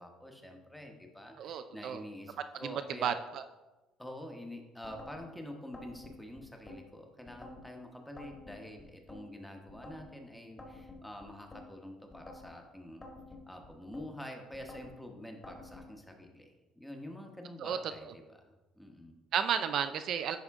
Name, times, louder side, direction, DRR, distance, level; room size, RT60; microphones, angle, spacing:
voice 1, 0.0-3.2 4.0-13.0 13.5-19.2, left 1 dB, 5° left, 3 dB, 1.1 m, -47 dB
voice 2, 1.4-2.0 2.6-2.7 3.0-3.4 17.6-17.8 19.3-20.4, right 8 dB, 60° right, 9 dB, 0.3 m, -32 dB
sound 1, 4.8-5.2 5.7-6.8 7.3-7.7 8.2-9.2 9.7-10.1 10.6-11.6 12.1-12.5 13.0-14.1 14.5-14.9 15.4-15.9, left 2 dB, 20° left, 1.6 m, -50 dB
10.5 x 3.6 x 3.5 m, 1.1 s
cardioid pair, 105°, 0 cm